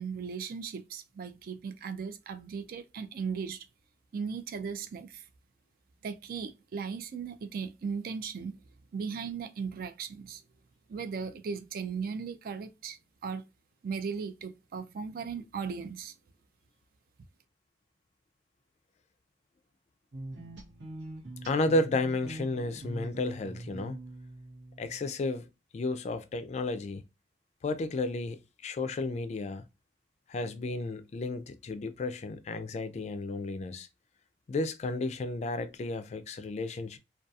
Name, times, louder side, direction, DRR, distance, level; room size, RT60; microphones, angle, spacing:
voice 1, 0.0-3.7 4.1-5.3 6.0-8.6 8.9-10.4 10.9-13.4 13.8-16.1, right 6 dB, 55° right, 0.3 m, -37 dB
sound 1, 20.1-25.3, right 2 dB, 90° right, 0.8 m, -44 dB
voice 2, 21.5-24.0 24.8-27.0 27.6-29.6 30.3-33.9 34.5-37.0, left 2 dB, 40° left, 0.3 m, -32 dB
2.6 x 2.2 x 2.3 m
head